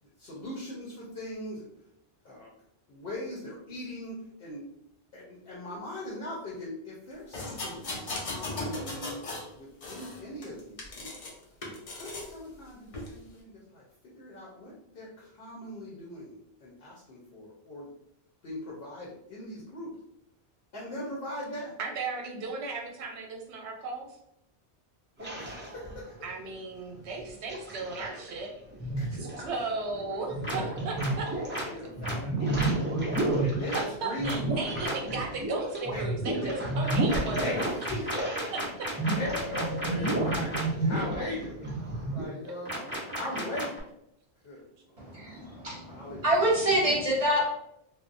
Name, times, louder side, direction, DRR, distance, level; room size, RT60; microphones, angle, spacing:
voice 1, 0.0-1.7 2.2-2.5 2.9-4.6 5.1-11.1 11.9-17.9 18.4-19.9 20.7-21.7 25.2-26.2 27.8-28.1 29.0-29.2 29.9-30.7 31.3-33.1 33.4-35.3 35.9-36.1 36.4-36.5 37.4-38.6 39.1-43.7 44.4-45.3 45.6-46.2, left 1 dB, 65° left, -5 dB, 0.9 m, -40 dB
sound 1, 7.3-9.5 9.8-11.3 11.6-12.3 12.9-13.1, left 2 dB, 50° left, 0.4 m, -37 dB
voice 2, 21.8-24.1 26.2-28.5 29.2-31.9 33.7-37.7 38.5-38.6, right 3 dB, 90° right, 2 dB, 0.9 m, -36 dB
sound 2, 25.2-26.3 27.0-28.4 28.7-31.6 31.9-38.6 38.9-42.2, right 2 dB, 20° right, 0.3 m, -31 dB
sound 3, 30.4-30.5 31.0-31.1 31.5-31.6 32.0-32.1 32.6-32.7 33.1-33.2 33.7-33.8 34.2-34.4 34.8-34.9 36.8-40.6 42.6-43.8, equal, 10° left, 0.8 m, -34 dB
voice 3, 45.0-47.4, right 1 dB, 35° right, -5 dB, 0.8 m, -26 dB
2.7 x 2.1 x 2.5 m, 0.78 s
omnidirectional pair, 1.1 m